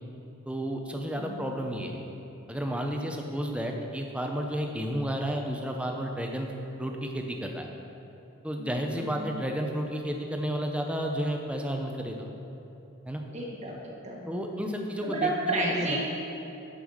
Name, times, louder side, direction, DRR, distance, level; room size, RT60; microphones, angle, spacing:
voice 1, 0.5-2.0 2.5-6.5 6.8-7.7 8.4-12.3 13.1-13.2 14.3-16.0, equal, 5° right, 2 dB, 0.7 m, -32 dB
voice 2, 1.2-1.6 8.6-9.4 13.3-14.7 15.0-16.0, right 2 dB, 30° right, -3 dB, 1.4 m, -33 dB
10.5 x 5.5 x 6.3 m, 2.9 s
head